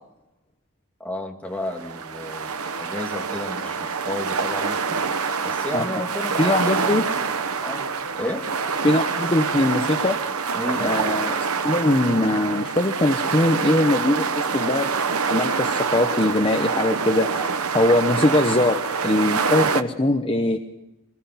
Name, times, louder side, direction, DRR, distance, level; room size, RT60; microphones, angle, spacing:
voice 1, 1.0-5.0 5.4-7.2 7.6-8.4 10.5-10.9, left 1 dB, 5° left, 1 dB, 2.3 m, -32 dB
sound 1, 1.6-19.8, right 5 dB, 75° right, 1.1 m, -26 dB
voice 2, 6.4-7.0 8.8-10.2 10.8-14.9 15.3-18.8 19.0-20.6, left 1 dB, 25° left, 4 dB, 1.0 m, -21 dB
23.5 x 21.0 x 5.8 m, 0.96 s
head